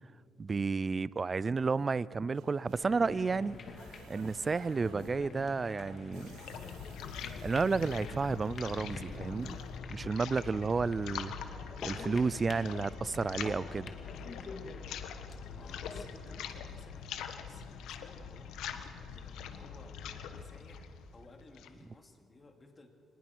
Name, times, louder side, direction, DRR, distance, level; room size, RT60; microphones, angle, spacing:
voice 1, 0.4-3.6 4.1-6.3 7.4-9.6 9.9-11.3 11.8-13.9, right 4 dB, 30° right, 0.4 m, -31 dB
sound 1, 2.3-9.8, right 9 dB, 90° right, 1.0 m, -56 dB
sound 2, 2.7-16.0, left 4 dB, 50° left, 2.2 m, -48 dB
sound 3, 5.8-21.8, left 7 dB, 85° left, 1.3 m, -43 dB
voice 2, 15.4-22.9, left 2 dB, 30° left, 2.8 m, -57 dB
24.5 x 20.0 x 6.2 m
cardioid pair, 90°, 0 cm